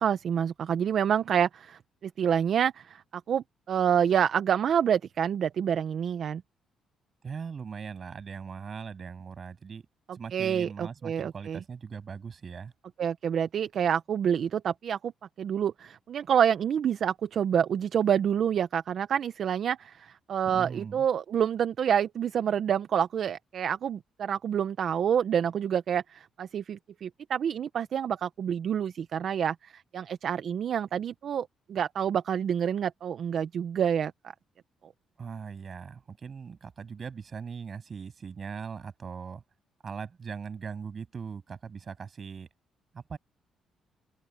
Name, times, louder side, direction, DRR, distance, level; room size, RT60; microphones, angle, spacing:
voice 1, 0.0-3.0 3.3-6.4 10.3-11.6 13.0-15.1 15.4-34.1, right 8 dB, 60° right, 0.7 m, -27 dB
voice 2, 7.2-9.9 10.1-12.7 20.5-21.1 35.2-39.4 39.8-42.5 42.9-43.2, right 6 dB, 45° right, 7.4 m, -40 dB
open air
cardioid pair, 90°, 0 cm